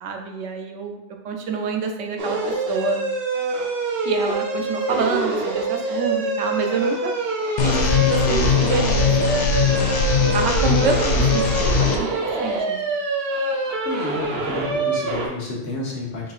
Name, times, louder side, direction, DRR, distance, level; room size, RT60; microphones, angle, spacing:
voice 1, 0.0-1.0 1.2-2.4 2.7-3.0 4.0-7.1 7.6-9.9 10.3-12.8, right 5 dB, 85° right, 3 dB, 1.0 m, -27 dB
sound 1, 2.2-15.3, right 2 dB, 60° right, 1.0 m, -25 dB
sound 2, 7.6-12.0, left 5 dB, 55° left, 0.5 m, -20 dB
voice 2, 13.8-16.3, left 2 dB, 80° left, -3 dB, 1.4 m, -30 dB
5.0 x 4.0 x 2.4 m, 0.92 s
omnidirectional pair, 1.2 m